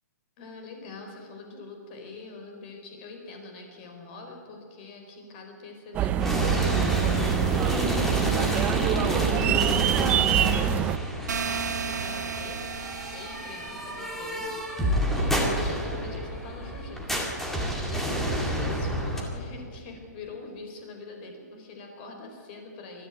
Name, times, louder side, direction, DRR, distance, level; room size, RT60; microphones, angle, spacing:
voice 1, 0.4-10.9 11.4-12.6 13.1-23.1, left 3 dB, 30° left, 3 dB, 4.4 m, -44 dB
sound 1, 5.9-11.0, right 10 dB, 15° right, 0.4 m, -25 dB
sound 2, 6.2-19.2, equal, 5° left, 2.1 m, -29 dB
sound 3, 11.3-14.2, right 6 dB, 70° right, 2.3 m, -34 dB
21.0 x 13.5 x 9.1 m, 2.3 s
hypercardioid pair, 160°, 10 cm